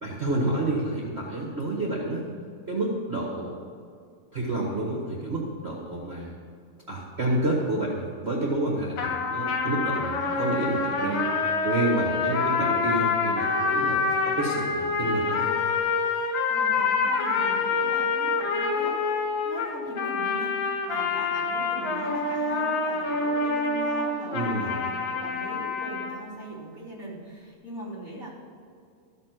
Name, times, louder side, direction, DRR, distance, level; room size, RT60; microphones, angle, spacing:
voice 1, 0.0-2.3 2.7-3.7 4.3-6.4 6.9-11.3 11.6-14.0 14.2-15.5 24.3-24.7, right 2 dB, 50° right, -3 dB, 0.7 m, -29 dB
sound 1, 9.0-26.1, left 4 dB, 70° left, 3.7 m, -26 dB
voice 2, 16.5-19.0 19.4-28.3, right 1 dB, 25° left, -7 dB, 3.6 m, -40 dB
14.0 x 6.6 x 7.5 m, 2.3 s
omnidirectional pair, 4.1 m